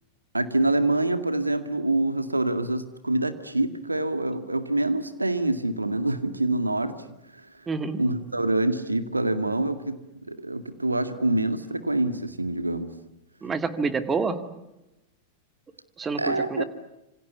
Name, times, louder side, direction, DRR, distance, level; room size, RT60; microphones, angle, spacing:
voice 1, 0.3-7.0 7.3-7.4 8.0-10.0 10.3-12.9 16.2-16.6, right 2 dB, 85° right, 10 dB, 2.0 m, -26 dB
voice 2, 7.7-8.0 13.4-14.4 16.0-16.6, right 4 dB, 20° right, 10 dB, 2.2 m, -27 dB
27.5 x 26.0 x 8.3 m, 0.95 s
figure-of-eight pair, 90°, 0 cm